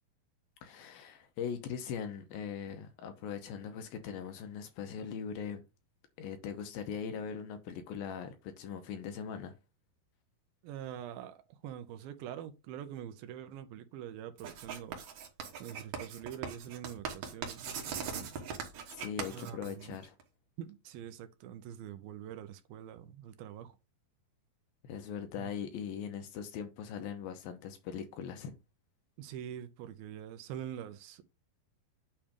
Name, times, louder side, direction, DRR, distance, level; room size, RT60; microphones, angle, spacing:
voice 1, 0.6-5.6 6.2-9.5 18.9-20.2 24.8-28.5, left 7 dB, 75° left, 2.5 m, -40 dB
voice 2, 10.6-15.0 15.6-18.3 19.3-20.0 20.6-23.8 25.4-25.5 29.2-31.2, right 10 dB, 75° right, 2.4 m, -45 dB
Writing, 14.4-20.2, right 6 dB, 60° right, 2.1 m, -41 dB
8.7 x 3.3 x 5.2 m
omnidirectional pair, 4.6 m